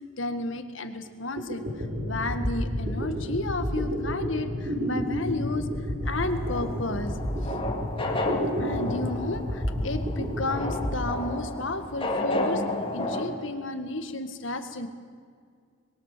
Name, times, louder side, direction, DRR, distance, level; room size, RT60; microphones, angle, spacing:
voice 1, 0.2-5.7 6.0-7.1 7.4-7.5 8.6-12.6 12.9-14.9, left 2 dB, 70° left, 8 dB, 1.9 m, -32 dB
sound 1, 1.1-1.2 1.4-11.8, equal, 40° right, 6.0 m, -31 dB
sound 2, 6.1-13.3, left 2 dB, 25° left, 2.4 m, -32 dB
25.5 x 22.0 x 6.9 m, 2.1 s
head